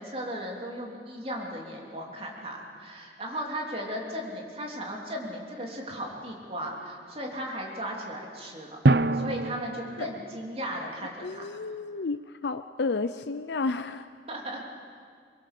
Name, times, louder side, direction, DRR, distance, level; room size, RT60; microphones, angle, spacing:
voice 1, 0.0-8.8 9.1-11.5 14.3-14.6, equal, 35° right, -1 dB, 3.1 m, -36 dB
Drum, 8.8-11.1, right 2 dB, 60° right, 0.7 m, -26 dB
voice 2, 11.2-14.1, left 3 dB, 70° left, 10 dB, 0.5 m, -31 dB
23.5 x 23.0 x 6.7 m, 2.2 s
head